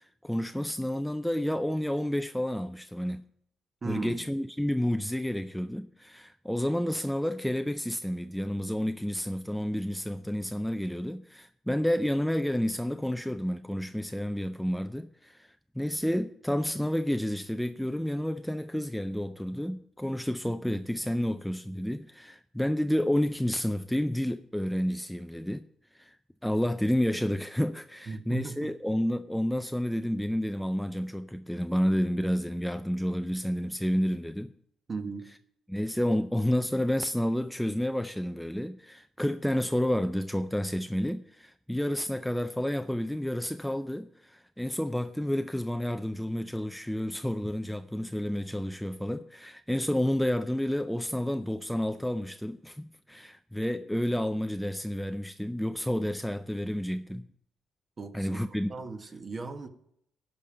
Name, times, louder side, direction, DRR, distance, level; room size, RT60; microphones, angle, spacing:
voice 1, 0.0-3.2 3.8-25.7 25.9-26.2 26.4-34.5 35.7-57.3 58.1-58.7, equal, 5° left, 0.4 m, -30 dB
voice 2, 3.8-4.2 28.1-28.7 34.9-35.2 58.0-59.7, right 4 dB, 35° right, 1.3 m, -37 dB
12.0 x 5.3 x 8.8 m
cardioid pair, 90°, 0 cm